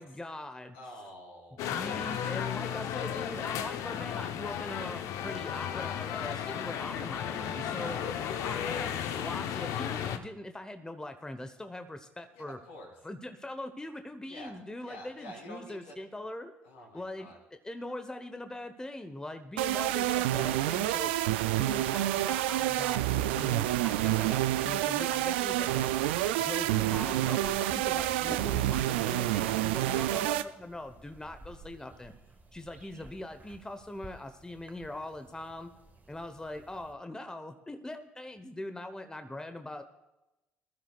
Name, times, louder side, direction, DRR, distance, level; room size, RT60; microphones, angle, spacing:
voice 1, 0.0-0.8 1.5-8.0 8.4-12.6 13.0-16.5 16.9-21.1 21.6-23.0 23.3-25.9 26.4-32.1 32.5-35.7 36.1-39.8, left 1 dB, 10° left, 8 dB, 1.1 m, -42 dB
voice 2, 0.7-1.6 7.7-8.3 12.3-12.9 14.3-14.5 14.8-16.0 16.6-17.4 27.6-27.9 29.9-30.2, equal, 80° left, -2 dB, 3.9 m, -48 dB
sound 1, 1.6-10.2, left 9 dB, 65° left, 0.8 m, -34 dB
sound 2, 19.6-30.4, right 14 dB, 80° right, 0.4 m, -28 dB
sound 3, 27.4-36.9, right 2 dB, 30° right, 1.7 m, -50 dB
20.5 x 13.0 x 2.4 m, 0.96 s
hypercardioid pair, 55°, 6 cm